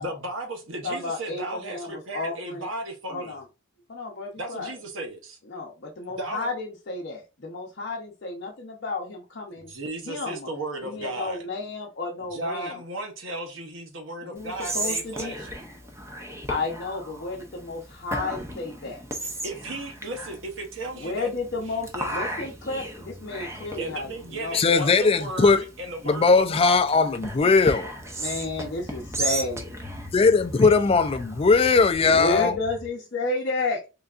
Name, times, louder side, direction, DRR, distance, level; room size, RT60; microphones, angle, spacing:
voice 1, 0.0-3.4 4.4-5.4 6.1-6.5 9.6-11.4 12.2-15.5 19.2-21.3 21.7-22.1 23.8-26.4, right 2 dB, 65° right, 0.9 m, -35 dB
voice 2, 0.8-2.7 3.1-3.4 3.9-4.7 5.5-9.7 10.1-10.5 10.8-12.8 14.2-15.3 16.5-19.3 21.0-24.9 27.4-27.5 28.2-29.6 32.1-33.8, left 3 dB, 50° left, 0.7 m, -32 dB
Whispering, 14.4-31.9, right 2 dB, 15° right, 0.6 m, -36 dB
voice 3, 24.5-25.6 26.0-27.9 30.1-32.6, left 4 dB, 30° left, 0.3 m, -19 dB
sound 1, 27.5-32.9, left 1 dB, 5° left, 1.0 m, -43 dB
3.8 x 3.3 x 2.4 m
head